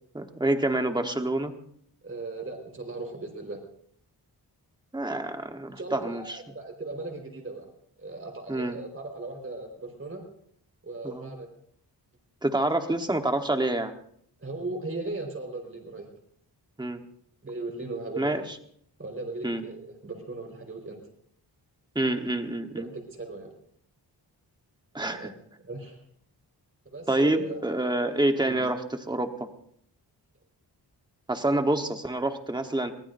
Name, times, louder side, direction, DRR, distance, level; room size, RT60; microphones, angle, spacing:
voice 1, 0.1-1.6 4.9-6.4 8.5-8.8 11.0-11.3 12.4-13.9 16.8-17.0 18.2-18.4 19.4-19.6 21.9-22.9 24.9-25.3 27.1-29.5 31.3-32.9, right 1 dB, 10° right, 5 dB, 1.2 m, -27 dB
voice 2, 2.0-3.6 5.8-7.7 8.0-10.2 10.8-11.5 14.4-16.1 17.4-18.5 19.0-21.0 22.7-23.5 25.0-25.3 25.6-26.0 26.9-27.7 28.4-28.6, right 2 dB, 30° right, 3 dB, 4.4 m, -37 dB
23.0 x 20.0 x 2.6 m, 0.65 s
wide cardioid pair, 180°, 41 cm